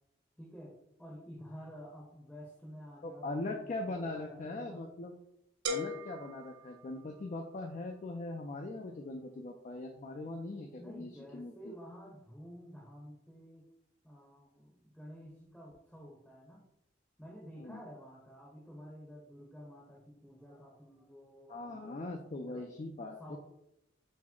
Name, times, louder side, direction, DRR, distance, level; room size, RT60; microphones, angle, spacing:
voice 1, 0.4-4.8 10.8-13.7 14.0-16.6 17.2-22.7 23.2-23.4, equal, 5° left, -2 dB, 0.7 m, -51 dB
voice 2, 3.0-5.1 5.7-11.7 17.6-17.8 21.5-23.4, left 2 dB, 35° left, 2 dB, 0.4 m, -41 dB
sound 1, 5.7-7.5, equal, 60° right, 0.3 m, -40 dB
4.5 x 2.1 x 4.3 m, 0.84 s
head